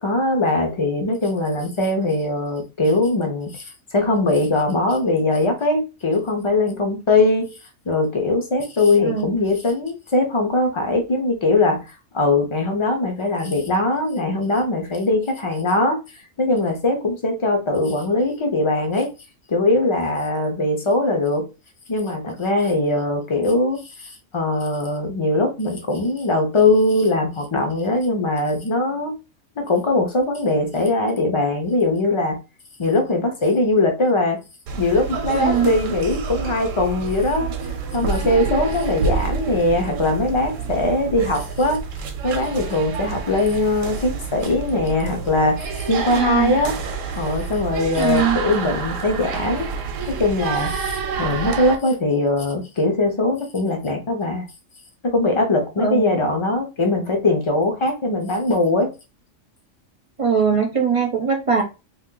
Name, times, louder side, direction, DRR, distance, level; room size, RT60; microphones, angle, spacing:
voice 1, 0.0-7.5 7.9-11.9 12.1-16.0 16.4-19.1 19.5-21.5 21.9-29.1 29.6-32.4 32.8-34.4 34.8-37.5 37.9-41.8 42.2-46.7 47.2-49.7 50.1-54.5 55.0-58.9, left 2 dB, 40° left, 0.4 m, -21 dB
voice 2, 9.0-9.4 35.3-35.7 46.1-46.6 48.0-48.4 55.8-56.2 60.2-61.6, right 6 dB, 50° right, 0.4 m, -21 dB
sound 1, 34.7-51.8, right 5 dB, 85° right, 1.0 m, -28 dB
2.5 x 2.3 x 3.7 m
omnidirectional pair, 1.3 m